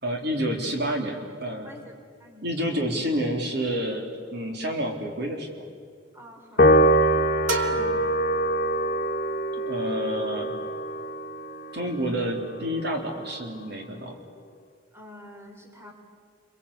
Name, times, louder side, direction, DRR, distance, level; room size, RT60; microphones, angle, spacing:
voice 1, 0.0-1.7 2.4-5.7 7.7-8.0 9.5-10.6 11.7-14.2, equal, 60° right, 2 dB, 3.7 m, -29 dB
voice 2, 2.2-2.8 6.1-7.2 7.6-7.9 9.8-10.0 14.9-15.9, equal, 15° right, 2 dB, 3.9 m, -48 dB
Piano, 6.6-13.2, right 1 dB, 45° left, 1.7 m, -24 dB
sound 1, 7.5-9.2, right 2 dB, 75° right, 2.4 m, -31 dB
29.5 x 23.5 x 8.5 m, 2.2 s
head